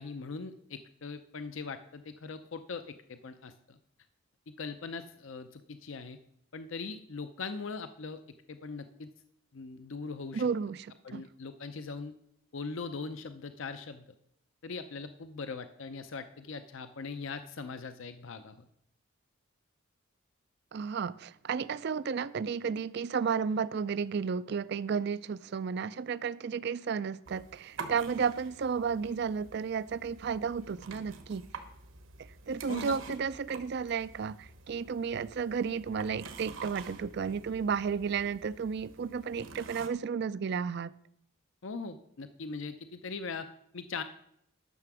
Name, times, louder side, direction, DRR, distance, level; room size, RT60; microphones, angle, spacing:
voice 1, 0.0-3.8 4.6-6.2 6.5-8.2 8.5-9.1 9.5-10.4 11.0-12.1 12.5-14.0 14.6-18.7 32.7-32.9 41.6-43.5 43.7-44.0, left 4 dB, 65° left, 0.6 m, -40 dB
voice 2, 10.3-11.2 20.7-31.4 32.5-41.0, right 6 dB, 50° right, 0.3 m, -33 dB
sound 1, 27.3-39.9, right 4 dB, 70° right, 1.2 m, -48 dB
11.0 x 6.8 x 6.1 m
head